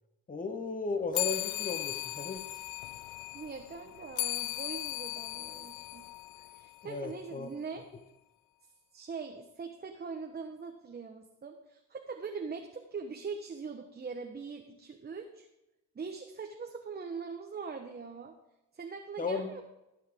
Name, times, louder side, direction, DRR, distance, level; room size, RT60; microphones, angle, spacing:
voice 1, 0.3-2.4 6.8-7.5 19.2-19.5, left 4 dB, 25° left, 8 dB, 1.2 m, -35 dB
sound 1, 1.1-7.0, left 17 dB, 85° left, 0.5 m, -37 dB
voice 2, 3.3-6.1 6.5-7.8 8.9-15.5 15.9-18.3 18.7-19.6, right 5 dB, 30° right, 3 dB, 1.1 m, -42 dB
15.5 x 8.1 x 3.7 m, 0.94 s
cardioid pair, 90°, 30 cm